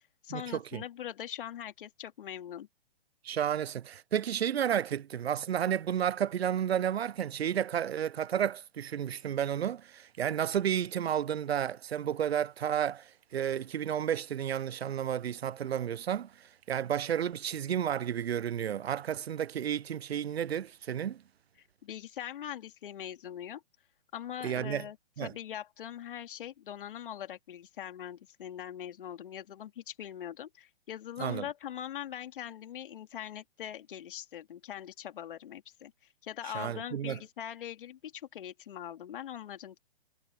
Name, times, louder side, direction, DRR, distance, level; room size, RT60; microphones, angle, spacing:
voice 1, 0.0-2.7 21.8-23.6 24.1-35.9 36.2-39.8, left 10 dB, 55° left, 2.8 m, -42 dB
voice 2, 3.2-21.2 24.4-24.8 25.2-25.3 31.2-31.5 36.5-37.2, right 9 dB, 75° right, 0.6 m, -32 dB
figure-of-eight pair, 130°, 32 cm